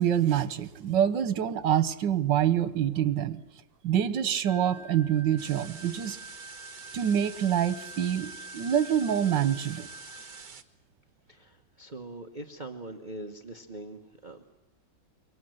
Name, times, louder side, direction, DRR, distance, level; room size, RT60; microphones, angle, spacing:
voice 1, 0.0-3.4 3.8-6.2 6.9-9.9, right 10 dB, 80° right, 14 dB, 1.7 m, -26 dB
sound 1, 4.4-10.5, equal, 30° left, 1.4 m, -47 dB
sound 2, 5.4-10.6, right 6 dB, 55° right, 1.9 m, -47 dB
voice 2, 11.3-14.6, right 2 dB, 30° right, 5 dB, 1.3 m, -42 dB
27.0 x 24.0 x 7.9 m, 1.0 s
omnidirectional pair, 1.9 m